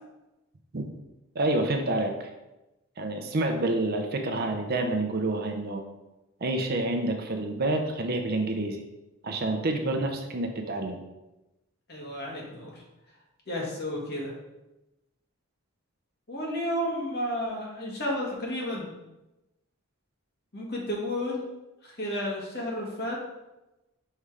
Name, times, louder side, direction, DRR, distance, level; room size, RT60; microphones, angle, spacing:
voice 1, 1.3-2.3 3.0-5.8 6.4-8.8 9.2-11.0, right 2 dB, 45° right, 4 dB, 0.7 m, -28 dB
voice 2, 11.9-12.7 13.5-14.3 16.3-18.9 20.5-21.5 21.8-23.2, left 1 dB, 50° left, -3 dB, 1.6 m, -32 dB
5.5 x 3.5 x 4.8 m, 0.98 s
head